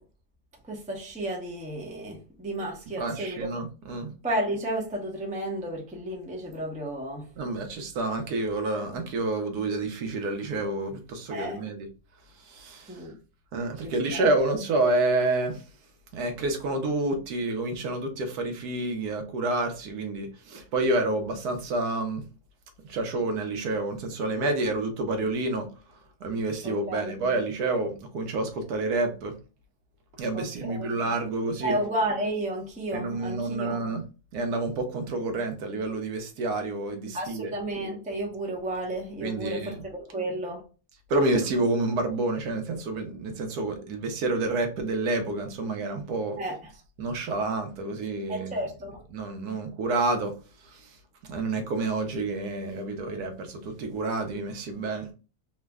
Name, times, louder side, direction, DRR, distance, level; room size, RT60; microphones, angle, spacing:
voice 1, 0.7-3.5 4.2-7.3 11.3-11.6 12.9-13.1 13.8-14.2 26.6-27.1 30.3-30.9 31.6-33.8 37.1-40.7 46.4-46.7 48.3-49.0, right 1 dB, 10° right, 0.4 m, -32 dB
voice 2, 3.0-4.1 7.4-11.9 12.4-13.1 13.5-15.6 16.1-22.2 22.8-25.7 26.2-29.3 30.2-31.8 32.9-34.0 34.3-37.5 39.2-39.9 41.1-46.4 47.0-48.5 49.1-50.3 50.6-51.0 51.3-55.1, right 2 dB, 80° right, 1.2 m, -29 dB
3.2 x 2.1 x 3.4 m
omnidirectional pair, 1.6 m